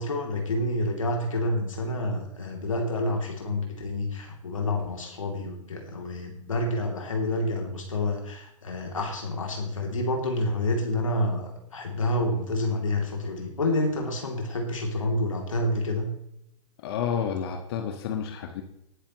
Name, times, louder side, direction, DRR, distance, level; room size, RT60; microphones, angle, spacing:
voice 1, 0.0-16.1, left 1 dB, 75° left, 1 dB, 2.9 m, -28 dB
voice 2, 16.8-18.6, left 7 dB, 50° left, 4 dB, 1.6 m, -30 dB
19.0 x 10.0 x 3.1 m, 0.75 s
figure-of-eight pair, 110°, 17 cm